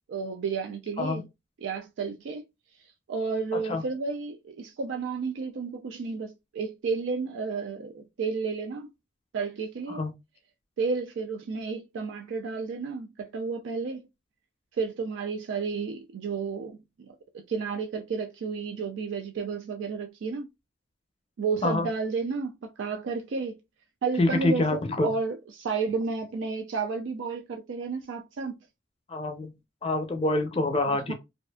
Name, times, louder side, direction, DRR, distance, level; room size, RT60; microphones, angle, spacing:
voice 1, 0.1-1.2 1.6-2.4 3.1-8.9 9.3-10.0 10.8-14.0 14.8-16.8 17.1-17.2 17.5-20.5 21.4-23.5 24.0-28.6 30.8-31.1, right 4 dB, 75° right, 0.4 m, -32 dB
voice 2, 3.5-3.8 9.9-10.1 21.6-21.9 24.2-25.1 29.1-29.5 29.8-31.1, left 2 dB, 30° left, 0.5 m, -26 dB
2.6 x 2.4 x 2.2 m
head